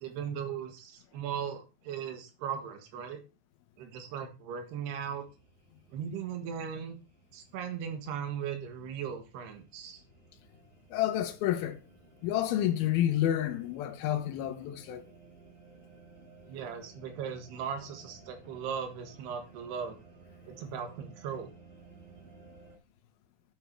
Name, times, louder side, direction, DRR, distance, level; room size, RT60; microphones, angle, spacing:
voice 1, 0.0-3.2 3.8-5.2 5.9-7.0 7.3-10.0 16.5-20.0 20.5-21.5, right 7 dB, 85° right, 3.6 m, -38 dB
sound 1, 4.9-22.8, right 4 dB, 60° right, 5.2 m, -57 dB
voice 2, 10.9-11.8 12.2-15.1, left 12 dB, 75° left, 2.9 m, -29 dB
10.5 x 6.9 x 4.6 m
omnidirectional pair, 4.5 m